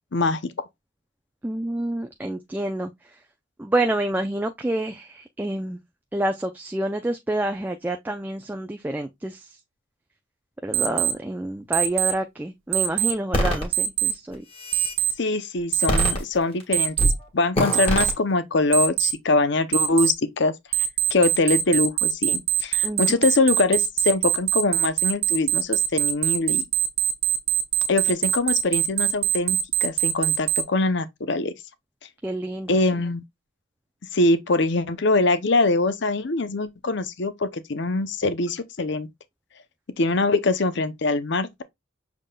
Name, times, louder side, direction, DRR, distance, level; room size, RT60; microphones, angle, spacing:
voice 1, 0.1-0.5 15.2-17.0 17.3-20.5 21.1-26.6 27.9-31.5 32.7-33.2 34.1-39.1 40.0-41.6, left 3 dB, 55° left, 0.6 m, -23 dB
voice 2, 1.4-3.2 3.6-5.8 6.1-9.6 10.6-14.4 22.8-23.2 32.2-33.0, right 1 dB, 10° right, 0.3 m, -28 dB
Alarm, 10.7-11.1 11.7-12.1 12.7-13.1 13.7-14.1 14.7-15.1 15.7-16.1 16.7-17.1 17.7-18.1 18.7-19.1 19.7-20.1 20.7-30.6, right 11 dB, 65° right, 0.7 m, -22 dB
sound 1, 13.3-13.6 14.3-15.0 15.9-16.6 17.0-17.2 17.5-18.1, equal, 25° left, 1.6 m, -23 dB
6.5 x 3.7 x 2.2 m
head